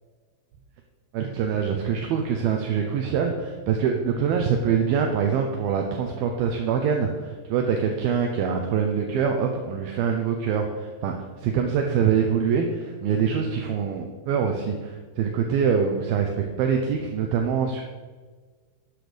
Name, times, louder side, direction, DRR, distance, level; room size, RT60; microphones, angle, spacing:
voice 1, 1.1-17.8, right 7 dB, 75° right, 3 dB, 2.3 m, -24 dB
12.5 x 10.0 x 5.2 m, 1.4 s
omnidirectional pair, 5.4 m